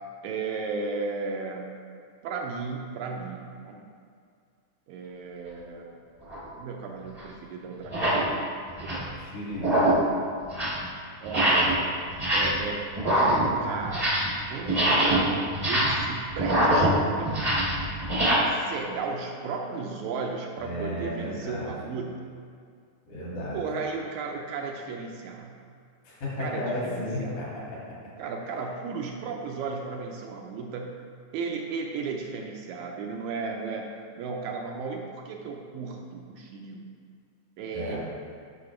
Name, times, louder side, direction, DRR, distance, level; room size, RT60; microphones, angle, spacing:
voice 1, 0.2-1.7 2.2-3.9 4.9-5.9 6.6-8.0 8.8-9.3 9.5-9.6 10.2-10.3 11.2-11.8 12.3-14.2 14.5-15.4 15.7-17.4 18.3-22.3 23.5-25.6 26.4-27.5 28.2-31.0 31.3-36.8 37.6-38.0, right 4 dB, 80° right, 1 dB, 1.9 m, -35 dB
sound 1, 6.3-6.5 7.2-7.3 7.8-8.3 8.7-9.1 9.5-10.1 10.4-10.8 11.2-11.8 12.1-12.7 12.9-14.4 14.6-18.3, right 1 dB, 35° right, 0.6 m, -24 dB
voice 2, 9.2-10.0 20.6-21.7 23.1-23.6 26.1-27.4 27.7-27.8 37.7-38.0, left 1 dB, 70° left, -7 dB, 3.6 m, -33 dB
10.0 x 5.4 x 3.2 m, 2.2 s
omnidirectional pair, 3.6 m